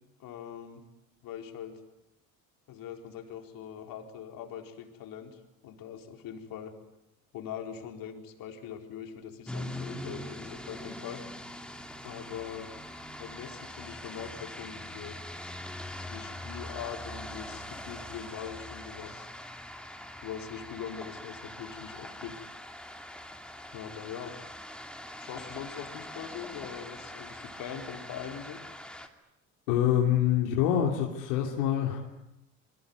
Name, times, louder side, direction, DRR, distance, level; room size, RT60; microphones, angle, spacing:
voice 1, 0.2-0.8 1.2-1.8 2.7-6.7 7.3-11.2 12.0-12.7 13.2-15.2 16.0-19.3 20.2-22.4 23.7-24.4 25.2-28.6, left 8 dB, 65° left, 4 dB, 4.4 m, -42 dB
sound 1, 9.5-29.1, left 1 dB, 5° left, 2.9 m, -42 dB
voice 2, 29.7-32.0, left 10 dB, 85° left, 0 dB, 3.2 m, -25 dB
28.5 x 21.5 x 9.6 m, 0.89 s
supercardioid pair, 85°, 36 cm